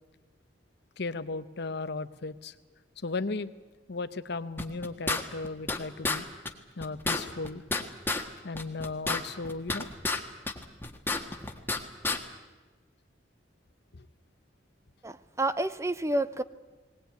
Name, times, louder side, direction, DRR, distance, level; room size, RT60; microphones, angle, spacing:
voice 1, 1.0-2.5 3.0-3.5 3.9-6.3 6.8-7.6 8.4-9.9 13.9-14.0, left 3 dB, 65° left, 13 dB, 0.9 m, -35 dB
sound 1, 4.6-5.8 6.0-6.2 6.5-6.6 6.8-8.2 8.6-10.2 10.5-11.8 12.0-12.2, left 3 dB, 10° left, 1.5 m, -30 dB
voice 2, 15.0-16.4, right 1 dB, 15° right, 14 dB, 0.6 m, -29 dB
20.0 x 19.0 x 9.3 m, 1.3 s
head